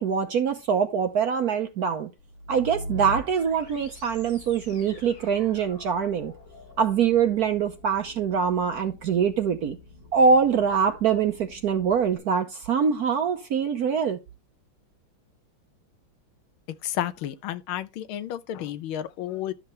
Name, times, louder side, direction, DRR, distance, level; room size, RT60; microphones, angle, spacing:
voice 1, 0.0-2.1 2.5-6.3 6.8-9.8 10.1-14.2, right 6 dB, 65° right, 1.0 m, -24 dB
sound 1, 2.2-12.2, equal, 60° left, 3.7 m, -43 dB
voice 2, 16.8-19.5, left 11 dB, 80° left, 1.5 m, -31 dB
11.5 x 6.1 x 3.2 m
omnidirectional pair, 2.3 m